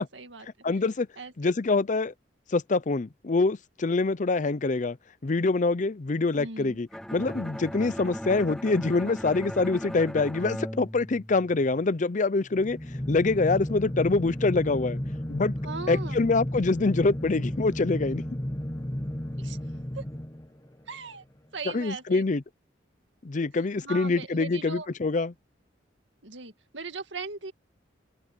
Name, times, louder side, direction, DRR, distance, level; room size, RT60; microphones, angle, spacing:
voice 1, 0.0-0.5 1.2-1.5 6.3-6.8 15.6-16.3 19.4-19.6 19.9-20.0 20.9-21.2 21.5-22.2 23.8-24.9 26.2-27.5, right 4 dB, 80° right, 2.0 m, -39 dB
voice 2, 0.6-1.1 1.4-2.1 2.5-5.0 5.2-12.8 13.1-15.0 15.3-15.5 15.9-18.2 21.7-22.4 23.2-25.3, left 3 dB, 40° left, 0.6 m, -25 dB
Bowed string instrument, 6.9-11.8, equal, ahead, 0.5 m, -37 dB
sound 1, 12.5-20.8, equal, 20° left, 1.5 m, -33 dB
open air
head